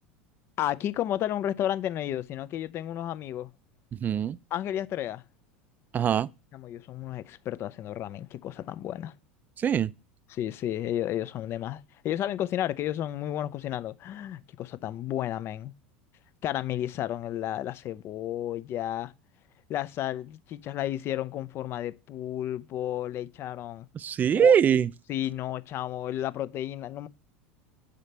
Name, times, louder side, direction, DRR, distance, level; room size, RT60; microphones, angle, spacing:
voice 1, 0.6-3.5 4.5-5.2 6.5-9.1 10.3-15.7 16.4-19.1 19.7-23.9 24.3-24.8 25.1-27.1, left 12 dB, 45° left, 0.4 m, -32 dB
voice 2, 3.9-4.4 5.9-6.3 9.6-9.9 23.9-24.9, right 8 dB, 30° right, 0.3 m, -23 dB
6.5 x 5.0 x 4.1 m
hypercardioid pair, 90°, 6 cm